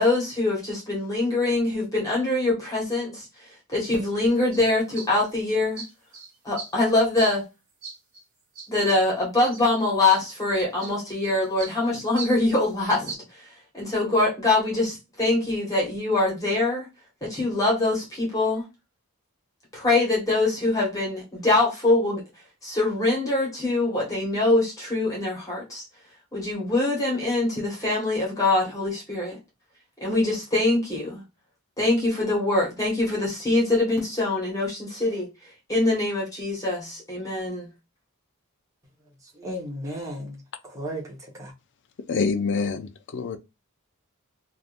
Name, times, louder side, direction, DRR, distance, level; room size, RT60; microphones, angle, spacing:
voice 1, 0.0-5.8 6.4-7.4 8.7-16.9 17.2-18.6 19.7-22.2 22.6-25.8 26.3-29.4 30.0-31.2 31.8-37.7, left 2 dB, 15° left, 1.3 m, -24 dB
sound 1, 4.2-4.3 4.5-4.6 4.9-5.3 5.8-6.7 7.2-7.4 7.8-8.2 8.6-9.0 9.4-9.6 10.1-10.2 10.8-11.3 11.6-11.7 12.2-12.4 13.1-13.2, right 5 dB, 60° right, 1.4 m, -38 dB
voice 2, 39.2-41.5, equal, 15° right, 1.1 m, -35 dB
voice 3, 42.1-43.4, left 4 dB, 55° left, 0.5 m, -26 dB
3.4 x 2.6 x 2.4 m
head